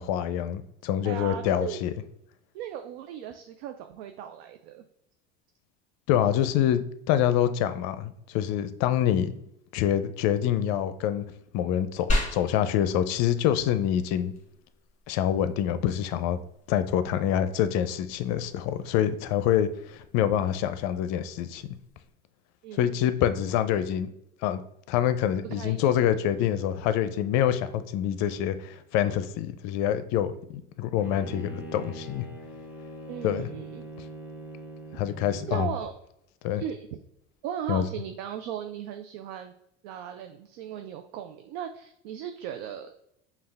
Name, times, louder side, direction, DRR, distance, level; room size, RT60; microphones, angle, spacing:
voice 1, 0.0-1.9 6.1-9.3 9.7-11.3 11.5-14.3 15.1-16.4 16.7-21.8 22.7-24.1 24.4-24.6 24.9-32.3 33.2-33.5 34.9-35.7 36.4-36.6 37.7-37.8, left 10 dB, 60° left, 12 dB, 0.5 m, -26 dB
voice 2, 1.0-1.8 2.5-4.8 22.6-23.1 25.5-25.9 33.1-33.8 35.5-35.9 36.6-36.9 37.4-39.5 39.8-43.0, right 9 dB, 70° right, 7 dB, 0.5 m, -37 dB
sound 1, 12.1-22.1, left 1 dB, 20° left, 1.5 m, -38 dB
Bowed string instrument, 31.0-35.7, right 2 dB, 5° right, 0.7 m, -42 dB
5.4 x 2.4 x 3.3 m, 0.77 s
hypercardioid pair, 85°, 32 cm